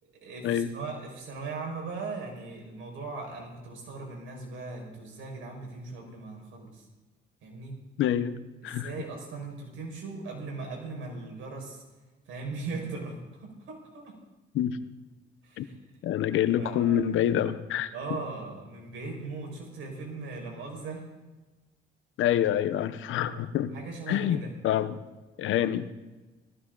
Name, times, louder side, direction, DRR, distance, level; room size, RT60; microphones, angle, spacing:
voice 1, 0.0-6.9 7.4-7.8 8.6-11.8 12.3-14.2 15.4-15.7 16.6-17.1 17.9-21.1 23.7-24.6, right 3 dB, 80° right, 1 dB, 5.6 m, -39 dB
voice 2, 8.0-8.9 14.5-14.8 15.6-15.7 16.0-17.9 22.2-23.7 24.1-25.0 25.4-25.9, left 10 dB, 80° left, 12 dB, 0.9 m, -27 dB
18.0 x 14.5 x 4.0 m, 1.1 s
cardioid pair, 90°, 20 cm